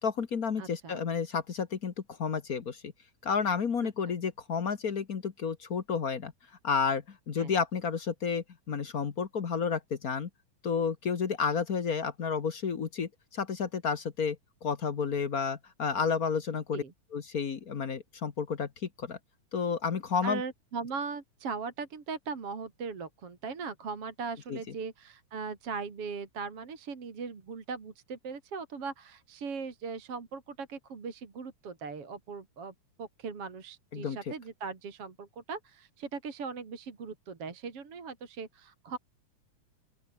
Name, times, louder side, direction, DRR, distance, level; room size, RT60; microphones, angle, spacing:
voice 1, 0.0-1.9 2.2-2.9 3.2-6.3 6.6-10.3 10.6-14.4 14.6-16.8 17.1-18.7 19.0-19.2 19.5-20.4 24.5-24.6 33.9-34.2, left 6 dB, 55° left, 1.0 m, -31 dB
voice 2, 0.6-1.0 7.4-7.5 16.7-16.9 20.2-32.7 33.0-39.0, right 5 dB, 45° right, 3.8 m, -39 dB
open air
omnidirectional pair, 3.7 m